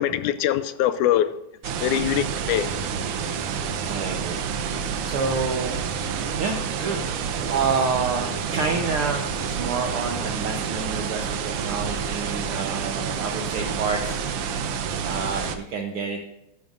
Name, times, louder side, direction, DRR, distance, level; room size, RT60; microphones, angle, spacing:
voice 1, 0.0-1.3 1.8-2.7, left 11 dB, 80° left, 1.9 m, -23 dB
sound 1, 1.6-15.6, right 7 dB, 90° right, 1.2 m, -28 dB
voice 2, 3.2-4.4 5.0-5.8 6.4-7.0 7.5-14.2 15.0-16.2, right 4 dB, 70° right, 1.3 m, -28 dB
14.0 x 10.5 x 2.5 m
omnidirectional pair, 3.7 m